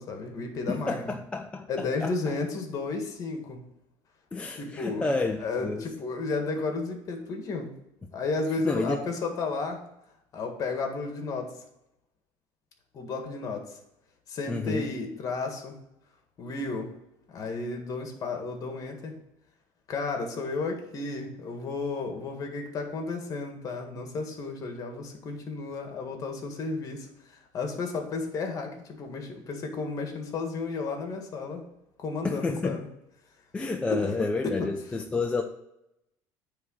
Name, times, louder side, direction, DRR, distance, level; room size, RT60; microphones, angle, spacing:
voice 1, 0.0-1.2 1.7-3.6 4.6-7.7 8.1-9.8 10.3-11.5 12.9-13.8 14.3-15.8 16.4-16.9 17.3-19.2 19.9-31.6 32.0-32.9 33.9-34.7, left 3 dB, 40° left, 4 dB, 1.8 m, -33 dB
voice 2, 0.7-2.1 4.3-5.8 8.6-9.0 14.5-14.9 32.2-32.8 33.5-35.4, left 3 dB, 10° left, 3 dB, 0.6 m, -30 dB
9.4 x 3.6 x 6.4 m, 0.84 s
cardioid pair, 125°, 9 cm